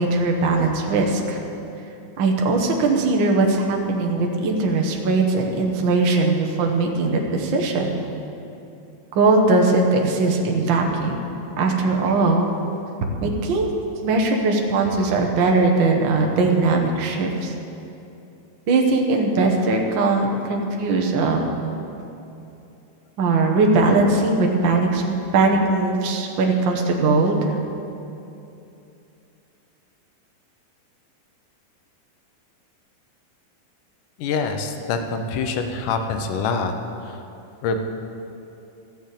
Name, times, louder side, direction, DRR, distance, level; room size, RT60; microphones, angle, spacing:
voice 1, 0.0-1.4 2.2-8.0 9.1-11.2 11.6-12.5 13.2-13.7 14.0-17.5 18.7-21.7 23.2-27.4, right 3 dB, 65° right, 1 dB, 1.2 m, -20 dB
voice 2, 34.2-36.7 37.0-37.2 37.6-37.8, left 4 dB, 80° left, 6 dB, 2.3 m, -25 dB
14.0 x 6.1 x 8.2 m, 2.8 s
omnidirectional pair, 3.7 m